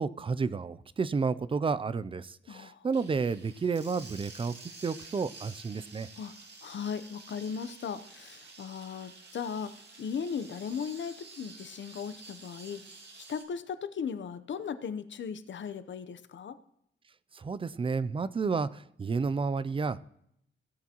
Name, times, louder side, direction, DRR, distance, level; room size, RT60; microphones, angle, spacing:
voice 1, 0.0-4.6 4.8-6.1 17.3-20.0, right 5 dB, 25° right, 16 dB, 0.4 m, -31 dB
voice 2, 2.5-2.9 6.1-6.3 6.6-9.7 10.0-12.8 13.2-16.6, left 6 dB, 65° left, 11 dB, 0.8 m, -37 dB
sound 1, 2.9-13.4, right 3 dB, 60° right, 1.8 m, -50 dB
16.5 x 8.5 x 2.9 m, 0.74 s
wide cardioid pair, 175°, 20 cm